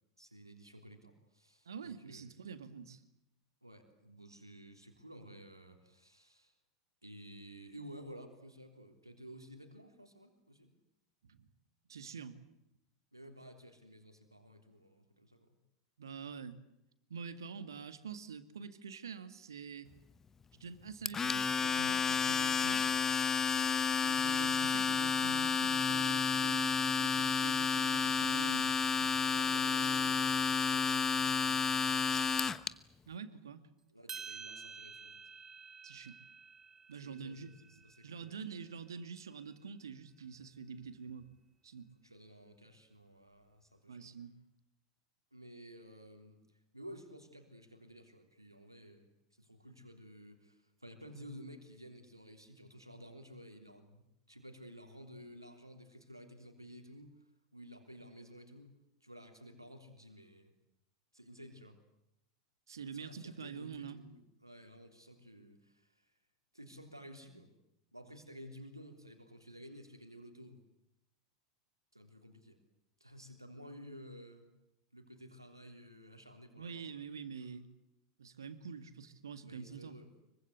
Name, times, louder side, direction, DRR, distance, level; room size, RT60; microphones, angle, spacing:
voice 1, 0.2-2.2 3.6-6.5 7.0-10.7 13.1-15.5 23.5-23.9 29.2-32.2 33.9-35.2 37.0-37.5 37.8-38.5 42.0-44.1 45.3-46.4 46.7-49.1 49.4-54.0 54.3-57.1 57.5-58.7 59.0-60.5 61.1-61.8 62.9-66.1 66.5-67.5 67.9-70.6 71.9-72.6 73.0-74.5 74.9-77.0 79.4-80.1, equal, 90° right, 5 dB, 3.4 m, -53 dB
voice 2, 1.7-3.0 11.4-11.5 11.9-12.4 16.0-16.6 17.1-19.9 20.5-22.8 24.0-28.7 29.0-29.1 33.1-33.6 35.8-36.2 36.9-37.5 38.0-41.3 41.6-41.9 43.9-44.4 62.7-64.0 76.6-77.7 78.2-80.0, right 6 dB, 70° right, 12 dB, 2.1 m, -46 dB
Domestic sounds home sounds, 21.1-32.7, left 5 dB, 15° left, 1.1 m, -31 dB
sound 1, 34.1-38.5, right 5 dB, 20° right, 1.9 m, -50 dB
25.0 x 24.0 x 8.2 m, 0.83 s
figure-of-eight pair, 85°, 2 cm